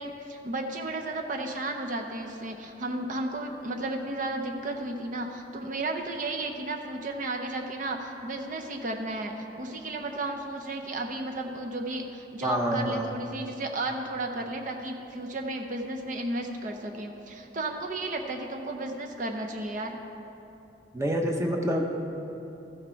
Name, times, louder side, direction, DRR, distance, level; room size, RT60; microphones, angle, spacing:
voice 1, 0.0-20.0, right 2 dB, 45° right, 3 dB, 0.6 m, -33 dB
voice 2, 12.4-13.1 20.9-21.9, equal, 15° right, 2 dB, 0.8 m, -27 dB
14.0 x 6.5 x 4.5 m, 2.9 s
head